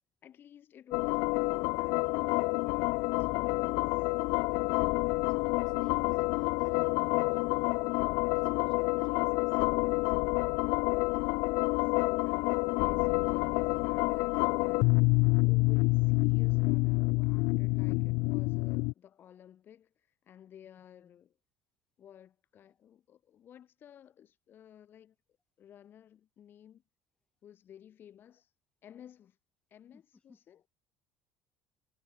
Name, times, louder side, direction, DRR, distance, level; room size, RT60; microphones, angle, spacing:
voice 1, 0.2-4.1 10.8-12.0 12.2-21.4 22.0-25.2 25.6-26.8 27.4-28.5 28.8-29.4 29.7-30.6, left 10 dB, 35° left, 5.3 m, -55 dB
sound 1, 0.9-18.9, left 27 dB, 80° left, 0.5 m, -28 dB
voice 2, 4.6-9.6 20.9-21.2 29.9-30.5, left 4 dB, 15° left, 5.5 m, -61 dB
cardioid pair, 160°, 6 cm